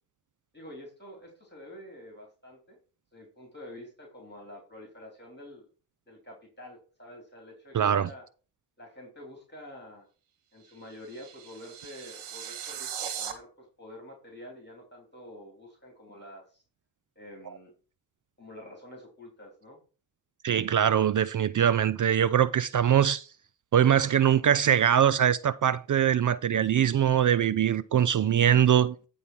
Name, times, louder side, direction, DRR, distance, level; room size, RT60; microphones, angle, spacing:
voice 1, 0.5-2.8 3.1-5.7 6.1-8.2 8.8-10.1 10.5-16.6 17.1-17.7 18.4-19.8, left 1 dB, 20° left, 3.4 m, -47 dB
voice 2, 7.7-8.1 20.4-23.3 23.7-29.1, right 9 dB, 40° right, 0.5 m, -22 dB
sound 1, 10.6-13.3, right 9 dB, 85° right, 1.3 m, -39 dB
9.4 x 3.6 x 5.9 m
supercardioid pair, 45°, 48 cm